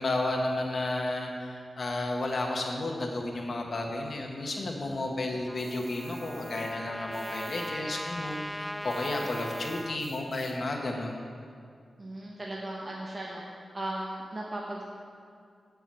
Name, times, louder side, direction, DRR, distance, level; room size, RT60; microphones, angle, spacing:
voice 1, 0.0-11.2, left 2 dB, 50° left, 1 dB, 1.3 m, -32 dB
Trumpet, 5.5-10.0, equal, ahead, 0.3 m, -39 dB
sound 1, 5.6-7.7 8.0-10.7, right 3 dB, 50° right, 1.2 m, -53 dB
voice 2, 12.0-13.4 13.7-14.8, right 1 dB, 30° right, -4 dB, 1.0 m, -37 dB
7.8 x 7.1 x 7.5 m, 2.3 s
wide cardioid pair, 155°, 0 cm